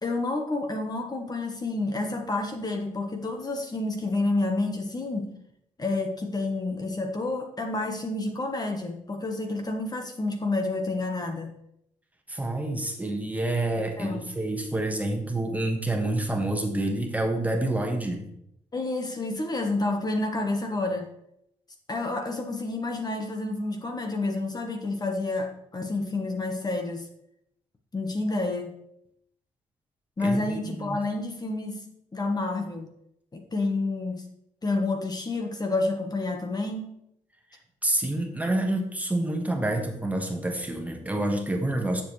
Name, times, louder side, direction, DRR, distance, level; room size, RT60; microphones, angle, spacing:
voice 1, 0.0-5.4 5.8-11.5 14.0-14.2 18.7-21.1 21.9-27.1 27.9-28.7 30.2-31.8 32.1-32.9 33.3-34.3 34.6-36.9, left 2 dB, 30° left, 3 dB, 1.5 m, -29 dB
voice 2, 12.3-18.3 30.2-31.0 37.8-42.0, right 1 dB, 10° right, 2 dB, 1.6 m, -28 dB
10.0 x 7.2 x 3.4 m, 0.76 s
cardioid pair, 85°, 13 cm